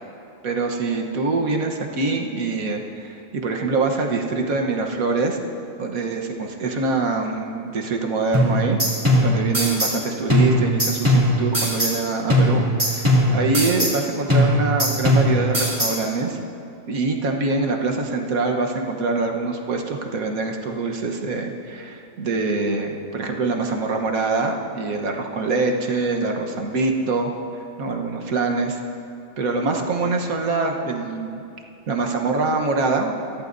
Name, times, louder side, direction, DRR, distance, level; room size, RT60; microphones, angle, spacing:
voice 1, 0.4-5.4 5.8-8.8 9.2-16.4 16.9-27.3 27.8-28.8 29.4-31.4 31.9-33.4, right 3 dB, 80° right, 2 dB, 1.6 m, -24 dB
sound 1, 8.3-10.0 10.3-12.0 12.3-14.0 14.3-16.0, equal, 15° right, 2.6 m, -20 dB
23.0 x 15.0 x 2.7 m, 2.6 s
omnidirectional pair, 1.5 m